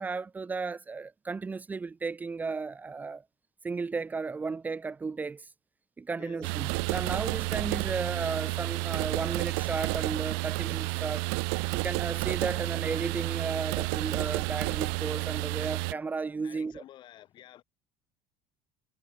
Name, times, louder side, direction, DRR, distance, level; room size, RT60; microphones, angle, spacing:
voice 1, 0.0-3.2 3.6-5.5 6.0-11.3 11.8-16.8, right 4 dB, 15° right, 2.5 m, -34 dB
voice 2, 6.2-6.5 16.4-17.6, left 13 dB, 35° left, 6.5 m, -51 dB
sound 1, 6.4-15.9, right 37 dB, 80° right, 1.1 m, -31 dB
cardioid pair, 175°, 13 cm